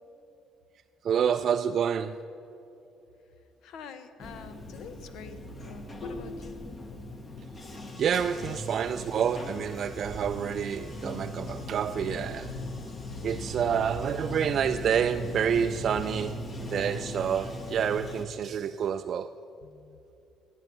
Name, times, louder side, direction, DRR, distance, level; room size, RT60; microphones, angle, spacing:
voice 1, 1.0-2.2 8.0-12.5 13.2-19.3, right 8 dB, 50° right, 8 dB, 0.3 m, -28 dB
voice 2, 3.6-6.6 19.6-20.0, left 6 dB, 70° left, 10 dB, 0.9 m, -47 dB
Bathtub (filling or washing), 4.2-18.3, left 1 dB, 30° left, 1.2 m, -39 dB
15.5 x 9.7 x 6.0 m, 2.9 s
cardioid pair, 120°, 0 cm